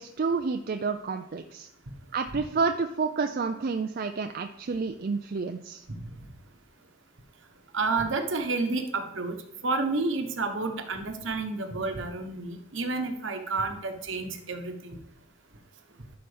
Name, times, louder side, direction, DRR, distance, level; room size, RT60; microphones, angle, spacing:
voice 1, 0.0-1.7 2.1-5.8, right 4 dB, 45° right, 6 dB, 0.4 m, -29 dB
voice 2, 7.7-9.4 9.6-15.0, right 3 dB, 65° right, 6 dB, 1.1 m, -30 dB
12.0 x 5.8 x 3.4 m, 0.83 s
head